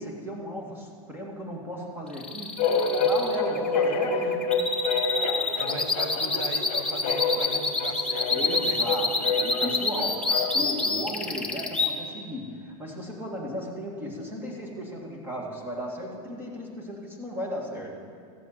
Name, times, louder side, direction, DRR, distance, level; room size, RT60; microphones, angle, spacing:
voice 1, 0.0-4.5 8.3-18.0, equal, 10° right, -1 dB, 2.3 m, -35 dB
sound 1, 2.1-11.9, left 3 dB, 5° left, 1.0 m, -27 dB
sound 2, 2.6-10.8, left 4 dB, 40° left, 1.5 m, -28 dB
voice 2, 5.5-9.1, right 5 dB, 55° right, 6 dB, 1.5 m, -39 dB
14.5 x 8.2 x 7.6 m, 2.4 s
supercardioid pair, 140°, 19 cm